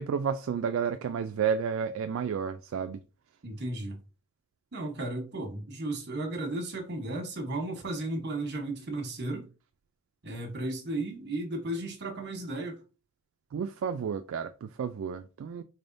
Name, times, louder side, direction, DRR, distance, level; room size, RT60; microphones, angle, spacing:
voice 1, 0.0-3.0 13.5-15.6, right 7 dB, 70° right, 0.3 m, -31 dB
voice 2, 3.4-4.0 4.7-9.5 10.2-12.8, right 2 dB, 55° right, 1.1 m, -34 dB
4.3 x 3.4 x 2.6 m
head